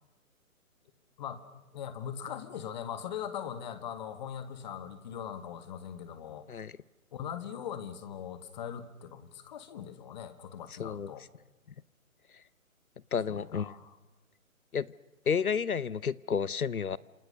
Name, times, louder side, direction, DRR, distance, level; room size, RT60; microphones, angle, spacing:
voice 1, 1.7-6.5 7.1-11.3 13.3-13.9, left 8 dB, 30° left, 11 dB, 1.9 m, -40 dB
voice 2, 10.8-11.1 13.1-13.7 14.7-14.9 15.3-17.0, left 6 dB, 85° left, 21 dB, 0.9 m, -31 dB
28.0 x 27.5 x 6.6 m, 1.0 s
figure-of-eight pair, 145°, 42 cm